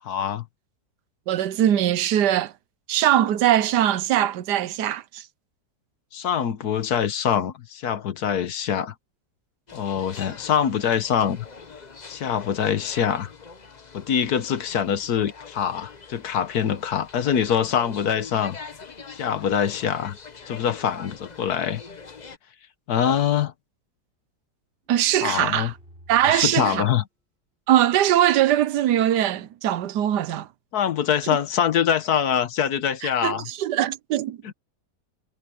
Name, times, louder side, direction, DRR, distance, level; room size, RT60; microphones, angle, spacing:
voice 1, 0.0-0.4 6.1-8.9 9.7-11.5 12.1-13.3 13.9-18.6 19.1-20.2 20.5-21.8 22.9-23.5 25.2-25.7 26.3-27.0 30.7-33.5 34.4-34.5, left 8 dB, 65° left, 1.5 m, -24 dB
voice 2, 1.3-2.5 2.9-5.3 24.9-25.7 26.1-26.9 27.7-30.5 33.2-34.4, right 11 dB, 80° right, 1.3 m, -21 dB
sound 1, 9.7-22.4, left 5 dB, 30° left, 1.0 m, -44 dB
sound 2, 24.8-26.6, right 1 dB, 35° right, 7.3 m, -51 dB
omnidirectional pair, 1.8 m